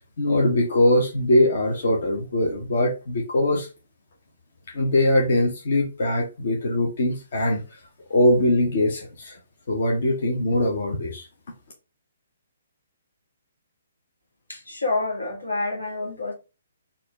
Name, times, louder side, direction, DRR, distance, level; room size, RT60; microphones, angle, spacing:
voice 1, 0.2-3.7 4.7-7.6 8.1-9.4 9.7-11.2, left 1 dB, 55° left, 0.9 m, -21 dB
voice 2, 14.5-16.3, left 2 dB, 85° left, 1.6 m, -28 dB
4.2 x 2.7 x 3.1 m
figure-of-eight pair, 135°, 0 cm